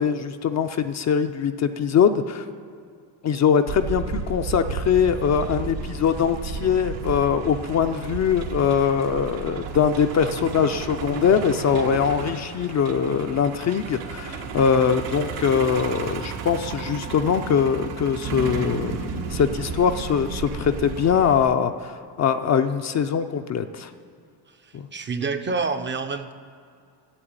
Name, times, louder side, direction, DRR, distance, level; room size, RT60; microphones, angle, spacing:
voice 1, 0.0-2.4 3.2-19.0 19.3-23.9 24.7-24.9, left 7 dB, 40° left, 8 dB, 0.6 m, -22 dB
Truck, 3.7-21.4, right 5 dB, 85° right, 1.5 m, -33 dB
voice 2, 24.9-26.3, right 4 dB, 25° right, 9 dB, 0.6 m, -27 dB
8.9 x 7.8 x 8.8 m, 2.2 s
cardioid pair, 110°, 45 cm